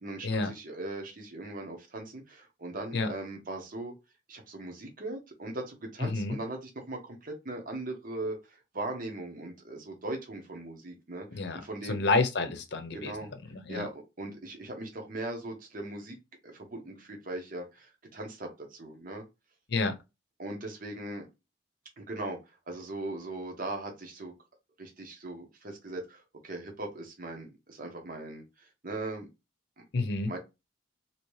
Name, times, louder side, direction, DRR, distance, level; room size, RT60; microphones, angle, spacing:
voice 1, 0.0-2.2 2.6-3.9 4.3-6.6 6.9-8.4 8.7-11.3 11.7-12.0 12.9-13.3 13.7-16.1 16.4-17.0 17.3-17.6 18.1-18.5 18.8-19.2 20.4-21.2 22.1-22.4 22.7-24.3 24.8-26.0 26.4-27.5 27.8-28.4 28.8-29.3 30.3-30.4, right 2 dB, 50° right, 0.9 m, -38 dB
voice 2, 11.9-13.1 13.7-13.9 19.7-19.9 29.9-30.3, left 3 dB, 65° left, 0.7 m, -28 dB
2.9 x 2.8 x 3.1 m
head